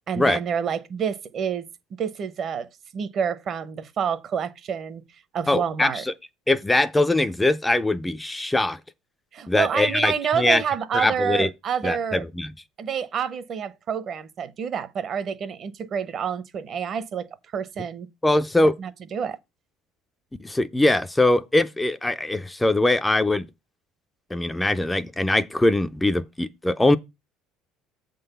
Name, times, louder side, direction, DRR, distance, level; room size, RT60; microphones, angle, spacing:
voice 1, 0.1-1.7 2.0-5.0 5.3-6.0 9.3-12.2 12.8-17.3 17.5-18.1 18.8-19.4, right 7 dB, 40° right, 0.7 m, -28 dB
voice 2, 5.5-6.1 6.5-8.8 9.5-10.6 10.9-11.5 11.8-12.5 18.2-18.7 20.4-23.5 24.3-27.0, left 2 dB, 10° left, 0.4 m, -22 dB
7.7 x 3.8 x 6.7 m
cardioid pair, 135°, 0 cm